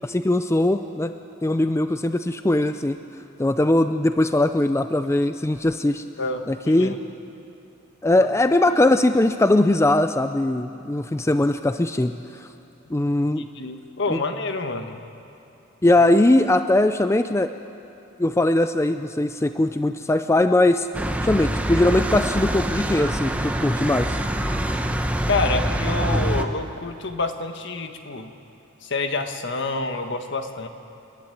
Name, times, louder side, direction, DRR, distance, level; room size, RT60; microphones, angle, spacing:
voice 1, 0.0-1.1 1.4-3.0 3.4-6.0 6.5-7.0 8.0-12.5 12.9-13.4 14.1-14.2 15.8-17.5 18.2-20.9 21.2-24.2, left 1 dB, 15° left, 9 dB, 0.5 m, -20 dB
voice 2, 6.2-6.9 13.5-15.0 25.3-28.3 28.8-30.7, left 3 dB, 65° left, 6 dB, 1.5 m, -27 dB
sound 1, 20.9-26.5, right 1 dB, 5° right, 1.0 m, -25 dB
sound 2, 22.8-25.5, right 5 dB, 75° right, 1.2 m, -42 dB
29.5 x 11.5 x 9.2 m, 2.9 s
head